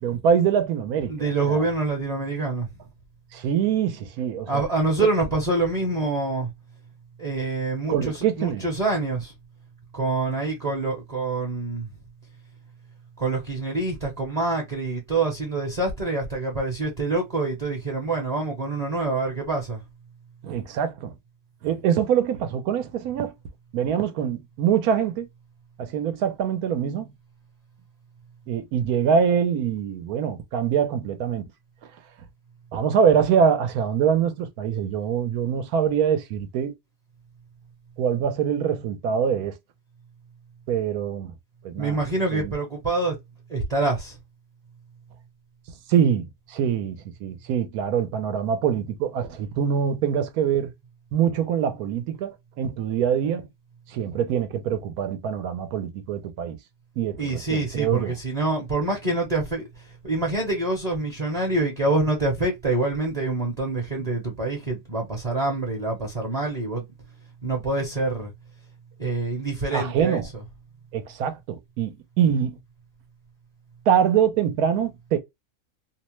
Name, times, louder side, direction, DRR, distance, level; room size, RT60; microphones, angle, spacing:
voice 1, 0.0-1.6 3.3-4.6 7.9-8.7 20.4-21.1 21.6-23.3 23.7-25.3 25.8-27.1 28.5-31.5 32.7-36.7 38.0-39.6 40.7-41.3 41.6-42.0 42.3-42.5 45.9-50.7 51.1-53.5 53.9-56.6 57.0-58.2 69.7-70.3 70.9-72.6 73.9-75.2, right 8 dB, 75° right, 1.1 m, -24 dB
voice 2, 1.1-2.7 4.5-6.5 7.2-9.3 9.9-11.9 13.2-19.8 41.8-43.1 43.5-44.2 57.2-59.7 60.0-66.8 67.4-68.3 69.0-70.4, right 3 dB, 35° right, 0.7 m, -26 dB
2.8 x 2.1 x 3.0 m
omnidirectional pair, 1.6 m